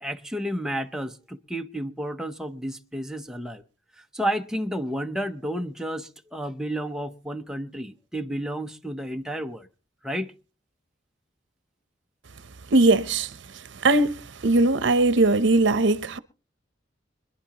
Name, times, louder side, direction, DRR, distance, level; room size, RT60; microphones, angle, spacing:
voice 1, 0.0-3.6 4.0-9.7 10.0-10.3, equal, 5° right, 0.7 m, -31 dB
voice 2, 12.7-13.3 13.8-14.2 14.4-16.2, right 2 dB, 65° right, 0.8 m, -19 dB
25.5 x 10.5 x 2.9 m
head